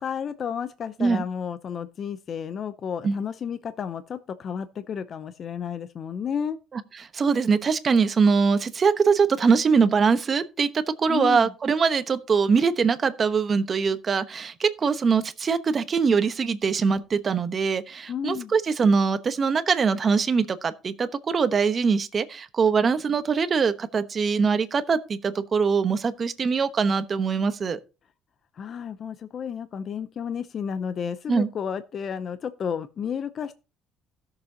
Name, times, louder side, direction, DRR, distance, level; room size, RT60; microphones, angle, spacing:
voice 1, 0.0-6.6 11.1-11.5 18.1-18.5 28.5-33.5, left 7 dB, 45° left, 0.6 m, -32 dB
voice 2, 7.1-27.8 31.3-31.5, right 5 dB, 35° right, 1.0 m, -22 dB
17.0 x 6.8 x 2.8 m
cardioid pair, 120°, 0 cm